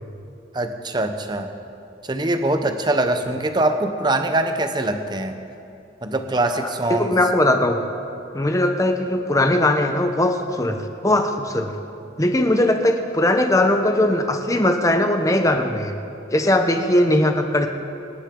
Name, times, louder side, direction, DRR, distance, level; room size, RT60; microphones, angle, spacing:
voice 1, 0.5-1.5 2.0-5.4 6.0-7.1, right 2 dB, 25° right, 7 dB, 0.8 m, -23 dB
voice 2, 7.0-7.8 8.3-11.7 12.2-15.9 16.3-17.7, left 1 dB, 20° left, 5 dB, 0.9 m, -19 dB
25.5 x 11.0 x 3.8 m, 2.7 s
head